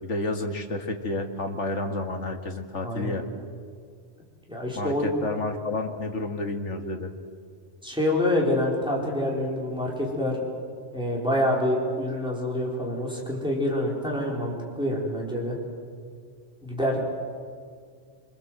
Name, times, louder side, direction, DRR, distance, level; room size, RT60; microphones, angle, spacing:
voice 1, 0.0-3.2 4.8-7.1, left 2 dB, 85° left, 5 dB, 2.2 m, -30 dB
voice 2, 4.5-5.1 7.8-10.4 10.9-15.5 16.6-17.0, left 1 dB, 5° right, -3 dB, 4.9 m, -26 dB
26.5 x 25.0 x 7.8 m, 2.1 s
omnidirectional pair, 1.2 m